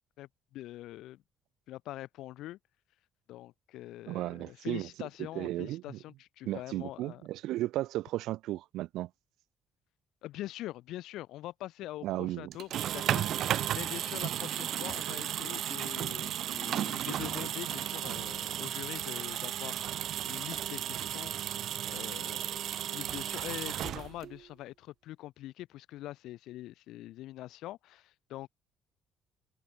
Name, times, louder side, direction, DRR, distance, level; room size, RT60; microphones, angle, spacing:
voice 1, 0.2-1.2 1.7-2.6 3.3-7.2 10.2-21.6 21.9-28.5, left 15 dB, 75° left, 6.1 m, -44 dB
voice 2, 4.1-5.1 5.3-6.0 6.5-9.1 12.0-12.6, right 15 dB, 80° right, 2.5 m, -35 dB
sound 1, 12.5-24.4, right 11 dB, 55° right, 0.6 m, -34 dB
cardioid pair, 170°, 0 cm